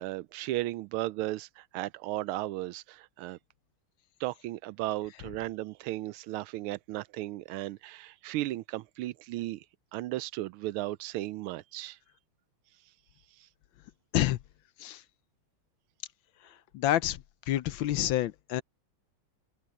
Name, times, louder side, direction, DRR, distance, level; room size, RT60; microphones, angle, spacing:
voice 1, 0.0-3.4 4.2-9.6 9.9-12.0, right 16 dB, 90° right, 1.5 m, -35 dB
voice 2, 16.7-17.2 17.5-18.6, left 13 dB, 75° left, 1.4 m, -28 dB
open air
omnidirectional pair, 2.3 m